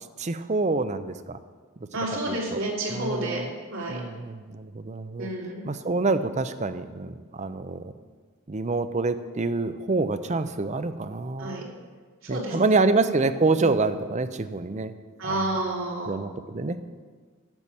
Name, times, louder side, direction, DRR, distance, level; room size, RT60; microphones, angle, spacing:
voice 1, 0.2-1.4 2.3-2.6 2.9-3.5 3.9-5.3 5.6-7.9 8.5-11.6 12.3-14.9 15.2-15.6 16.1-16.8, right 3 dB, 35° right, 11 dB, 0.5 m, -27 dB
voice 2, 1.9-3.4 3.7-4.0 5.2-5.7 11.4-11.6 12.2-12.8 13.6-13.7 15.2-16.2, right 1 dB, 75° right, -2 dB, 2.9 m, -30 dB
10.5 x 7.0 x 7.4 m, 1.5 s
head